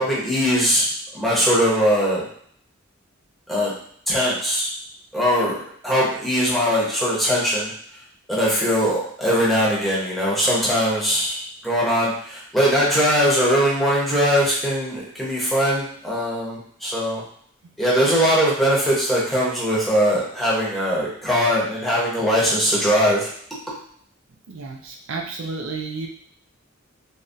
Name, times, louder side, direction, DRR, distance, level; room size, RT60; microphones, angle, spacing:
voice 1, 0.0-2.3 3.5-3.7 4.1-4.7 5.1-5.6 5.8-17.2 17.8-23.3, equal, ahead, -7 dB, 0.9 m, -21 dB
voice 2, 24.5-26.1, right 4 dB, 80° right, 2 dB, 0.5 m, -31 dB
3.4 x 2.2 x 2.6 m, 0.62 s
head